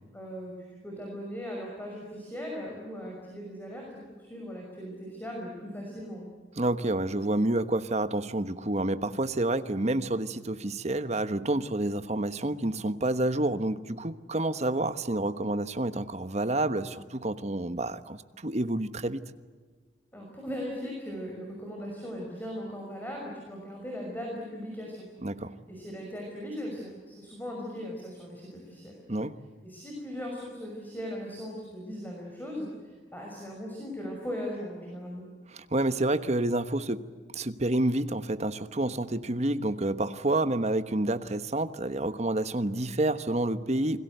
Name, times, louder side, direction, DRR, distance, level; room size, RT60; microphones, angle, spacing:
voice 1, 0.1-6.3 20.1-25.1 25.7-28.9 29.6-35.2, equal, 10° left, -1 dB, 5.9 m, -38 dB
voice 2, 6.6-19.2 25.2-25.6 29.1-29.4 35.5-37.1 37.3-44.0, right 1 dB, 35° right, 11 dB, 1.2 m, -29 dB
29.0 x 21.5 x 8.1 m, 1.5 s
head